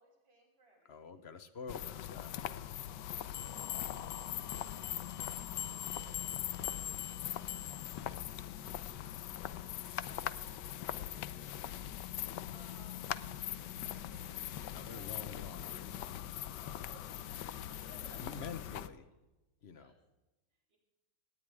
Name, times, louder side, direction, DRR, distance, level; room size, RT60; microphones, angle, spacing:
voice 1, 0.0-1.3 2.9-11.8 12.1-13.1 13.8-14.4 14.9-15.1 16.6-18.4 18.8-18.9 19.8-20.0 20.5-20.8, right 1 dB, 60° right, -2 dB, 6.1 m, -64 dB
voice 2, 0.8-2.8 14.7-16.0 18.2-19.1 19.6-19.9, left 5 dB, 40° left, 10 dB, 1.1 m, -47 dB
sound 1, 1.7-18.9, left 11 dB, 70° left, 1.2 m, -42 dB
sound 2, 3.3-8.0, left 11 dB, 85° left, 0.7 m, -43 dB
19.5 x 18.0 x 3.6 m, 1.1 s
omnidirectional pair, 2.2 m